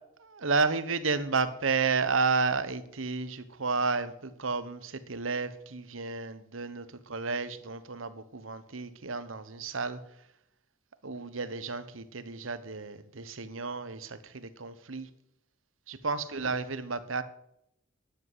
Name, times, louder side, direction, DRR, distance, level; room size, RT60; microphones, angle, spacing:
voice 1, 0.2-10.0 11.0-15.1 15.9-17.2, right 4 dB, 85° right, 1.1 m, -32 dB
12.5 x 10.5 x 8.1 m
head